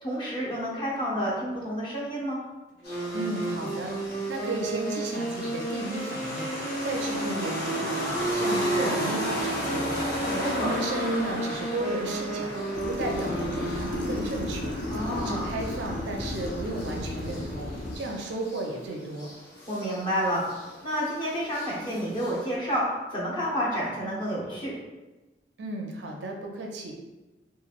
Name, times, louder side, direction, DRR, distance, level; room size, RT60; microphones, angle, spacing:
voice 1, 0.0-2.4 8.5-8.9 10.3-10.7 14.9-15.5 19.7-20.5 20.8-24.7, equal, 25° left, -5 dB, 0.7 m, -30 dB
Wind instrument woodwind instrument, 2.8-14.5, right 2 dB, 80° left, 1.2 m, -33 dB
sound 1, 2.8-22.5, left 1 dB, 60° left, 0.7 m, -36 dB
voice 2, 3.1-6.5 6.8-12.6 12.9-14.7 15.1-17.7 17.9-19.3 25.6-26.9, right 2 dB, 70° right, 2 dB, 0.4 m, -34 dB
sound 2, 12.7-18.0, left 1 dB, 45° left, 0.3 m, -34 dB
3.0 x 2.4 x 2.4 m, 1.1 s
head